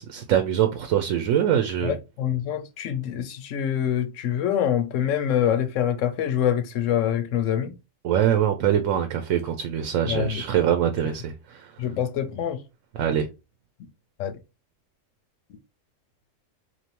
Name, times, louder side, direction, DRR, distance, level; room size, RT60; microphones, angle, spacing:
voice 1, 0.0-2.0 8.0-11.7 12.9-13.3, right 9 dB, 80° right, 1.0 m, -23 dB
voice 2, 1.8-7.8 10.0-10.4 11.8-12.6 14.2-14.3, left 9 dB, 75° left, 1.0 m, -25 dB
4.5 x 2.7 x 2.9 m
omnidirectional pair, 1.4 m